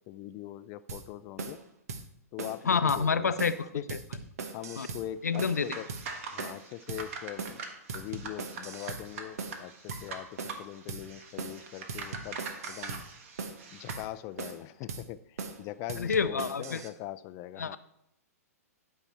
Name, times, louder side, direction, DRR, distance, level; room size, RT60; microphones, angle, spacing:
voice 1, 0.1-1.6 2.3-3.3 3.7-3.8 4.5-5.9 6.3-7.6 7.9-12.4 12.7-13.0 13.7-17.8, left 13 dB, 35° left, 12 dB, 0.4 m, -41 dB
sound 1, 0.9-1.0 1.4-1.6 1.9-2.0 2.4-2.6 2.9-3.0 3.4-3.6 3.9-5.0 5.4-5.6 5.9-6.0 6.4-6.6 6.9-7.0 7.4-7.6 7.9-9.0 9.4-9.6 9.9-10.0 10.4-10.6 10.9-11.0 11.4-11.6 11.9-13.0 13.4-13.6 13.9-14.0 14.4-14.6 14.9-15.0 15.4-15.6 15.9-16.9, right 4 dB, 70° right, 1.2 m, -39 dB
voice 2, 2.7-4.0 4.8-4.9 5.2-5.8 16.0-16.8 17.6-17.8, left 5 dB, 90° left, 12 dB, 0.6 m, -28 dB
sound 2, 5.3-14.0, right 4 dB, 55° right, 1.5 m, -43 dB
11.5 x 5.7 x 4.3 m, 0.78 s
hypercardioid pair, 120°, 8 cm